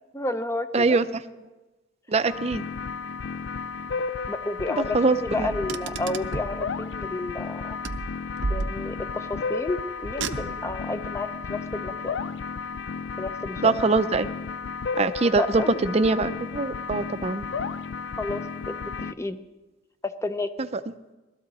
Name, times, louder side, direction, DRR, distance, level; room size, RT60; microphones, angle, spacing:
voice 1, 0.1-1.0 4.3-7.8 8.5-12.2 13.2-13.8 15.4-15.7 18.2-19.4 20.0-20.5, left 2 dB, 15° left, 10 dB, 0.7 m, -31 dB
voice 2, 0.7-1.0 2.1-2.6 4.9-5.5 13.6-14.3 15.0-17.5, right 3 dB, 35° right, 11 dB, 0.6 m, -23 dB
sound 1, 2.3-19.1, left 5 dB, 80° left, 0.4 m, -33 dB
Car, 5.4-6.6 7.8-9.2 10.0-10.8, right 3 dB, 85° right, 0.7 m, -32 dB
19.0 x 13.0 x 4.1 m, 1.1 s
head